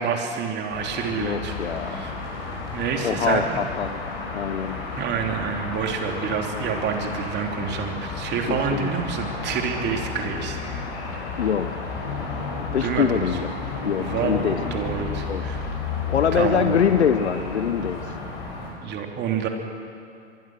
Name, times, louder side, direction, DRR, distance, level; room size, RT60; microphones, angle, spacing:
voice 1, 0.0-2.2 2.7-3.6 5.0-10.6 12.8-13.2 14.0-15.7 16.3-16.8 18.6-19.5, right 7 dB, 30° right, 3 dB, 3.1 m, -28 dB
sound 1, 0.7-18.7, left 4 dB, 50° left, 7.5 m, -32 dB
voice 2, 1.1-2.1 3.0-4.0 4.3-4.8 8.5-8.9 11.4-11.8 12.7-13.5 13.8-14.6 15.2-15.4 16.1-18.0, left 8 dB, 75° left, 10 dB, 1.1 m, -24 dB
25.0 x 22.0 x 6.3 m, 2.5 s
figure-of-eight pair, 95°, 34 cm